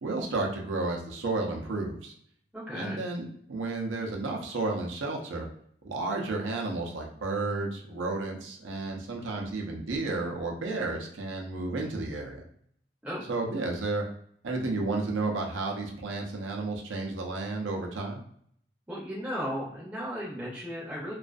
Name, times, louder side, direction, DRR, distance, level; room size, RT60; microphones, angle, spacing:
voice 1, 0.0-2.1 2.7-5.5 5.8-12.4 13.3-14.0 14.4-18.2, right 3 dB, 85° right, 1 dB, 0.5 m, -32 dB
voice 2, 2.5-3.0 13.0-13.3 18.9-21.1, equal, 10° right, -6 dB, 0.5 m, -35 dB
2.4 x 2.3 x 2.3 m, 0.64 s
head